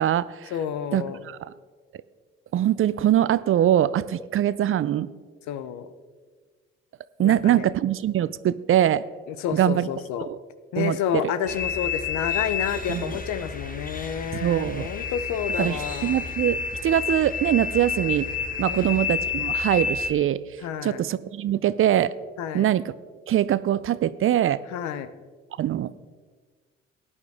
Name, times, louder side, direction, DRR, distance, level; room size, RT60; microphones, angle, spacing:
voice 1, 0.0-0.5 0.9-1.5 2.5-5.1 7.2-9.0 9.5-9.9 10.3-10.4 10.8-11.0 12.9-13.2 14.4-14.9 15.6-18.3 18.6-20.4 20.8-22.1 22.5-22.9 23.3-24.6 25.6-25.9, right 11 dB, 45° right, 17 dB, 0.5 m, -23 dB
voice 2, 0.5-1.2 5.5-5.9 7.2-7.7 9.3-10.3 10.7-16.2 18.7-19.0 20.6-21.0 22.4-22.7 24.7-25.1, left 9 dB, 65° left, 13 dB, 0.8 m, -30 dB
sound 1, 11.5-20.1, left 6 dB, 25° left, 1.4 m, -30 dB
14.0 x 9.8 x 3.5 m, 1.5 s
hypercardioid pair, 55°, 30 cm